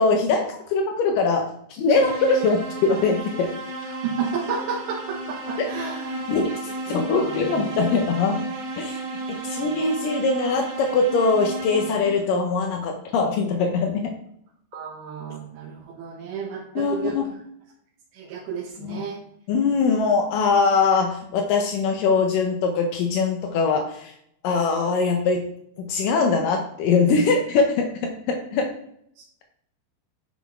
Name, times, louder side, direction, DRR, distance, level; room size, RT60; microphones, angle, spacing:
voice 1, 0.0-3.5 5.6-5.7 6.3-8.4 8.8-9.0 9.4-14.0 16.8-17.2 18.8-19.0 19.5-24.1 24.4-25.5 25.8-28.7, left 4 dB, 90° left, 3 dB, 1.9 m, -22 dB
sound 1, 1.9-12.3, right 2 dB, 60° right, 3.7 m, -33 dB
voice 2, 4.0-6.2 6.9-7.5 9.5-9.7 14.7-17.4 18.1-19.2, right 6 dB, 85° right, -4 dB, 3.4 m, -32 dB
9.9 x 6.3 x 3.6 m, 0.70 s
omnidirectional pair, 5.0 m